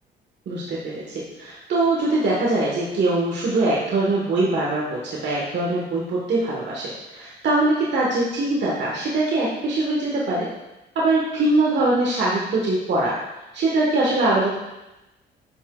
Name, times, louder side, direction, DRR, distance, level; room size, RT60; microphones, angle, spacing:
voice 1, 0.4-10.5 10.9-13.2 13.5-14.6, right 2 dB, 60° right, -5 dB, 1.6 m, -22 dB
10.0 x 6.0 x 2.5 m, 0.97 s
cardioid pair, 90°, 20 cm